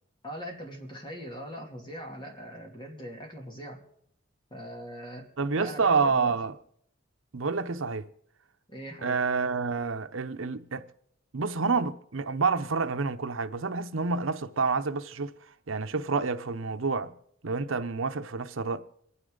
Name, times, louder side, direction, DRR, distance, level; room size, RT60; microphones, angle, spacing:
voice 1, 0.2-3.8 4.5-5.3 5.5-6.3 8.7-9.2, equal, 25° left, 2.8 m, -41 dB
voice 2, 5.4-6.5 7.3-8.0 9.0-10.8 11.3-15.3 15.7-17.1 17.4-18.8, right 4 dB, 80° right, 0.8 m, -28 dB
27.0 x 9.8 x 3.9 m
head